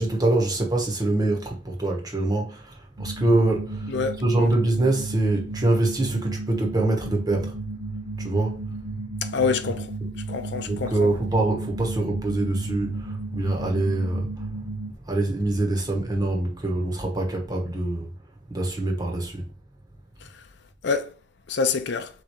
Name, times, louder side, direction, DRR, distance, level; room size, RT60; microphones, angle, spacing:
voice 1, 0.0-3.9 4.2-7.5 8.2-8.6 9.7-9.8 10.0-10.1 10.6-14.4 15.1-18.1 18.5-19.5, right 2 dB, 20° right, 1.1 m, -24 dB
sound 1, 3.0-14.9, right 3 dB, 65° right, 0.6 m, -34 dB
voice 2, 3.9-4.5 9.3-9.8 10.3-11.1 20.8-21.1 21.5-22.1, left 5 dB, 70° left, 0.6 m, -26 dB
3.7 x 3.2 x 4.4 m
head